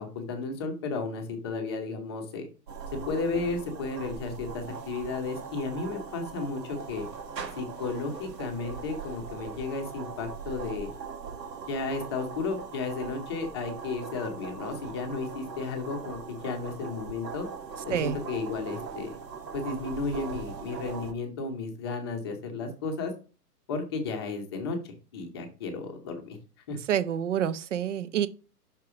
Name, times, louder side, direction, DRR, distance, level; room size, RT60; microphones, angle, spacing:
voice 1, 0.0-2.5 2.9-7.1 7.6-10.9 11.7-17.5 17.8-19.2 19.5-23.1 23.7-26.4 26.7-26.8, left 4 dB, 15° left, 0.7 m, -33 dB
sound 1, 2.7-21.1, right 5 dB, 85° right, 1.9 m, -40 dB
voice 2, 26.9-28.3, right 9 dB, 50° right, 0.6 m, -27 dB
5.9 x 4.7 x 4.9 m
hypercardioid pair, 165°, 48 cm